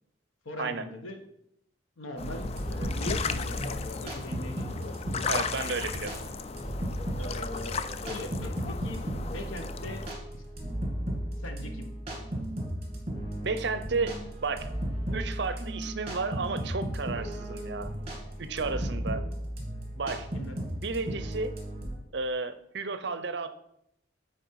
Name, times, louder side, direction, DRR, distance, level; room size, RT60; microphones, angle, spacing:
voice 1, 0.4-1.2 2.0-4.9 7.1-10.0 10.3-10.4 11.4-11.9 20.3-20.5, left 1 dB, 85° left, 5 dB, 1.3 m, -41 dB
sound 1, 2.2-10.1, left 5 dB, 30° left, 0.3 m, -36 dB
sound 2, 2.2-21.9, equal, 30° right, 2.0 m, -35 dB
voice 2, 5.3-6.2 13.4-14.7 15.1-17.9 18.4-19.3 20.0-20.3 20.7-21.5 22.1-23.5, right 4 dB, 55° right, 11 dB, 0.6 m, -32 dB
9.2 x 4.4 x 4.7 m, 0.77 s
head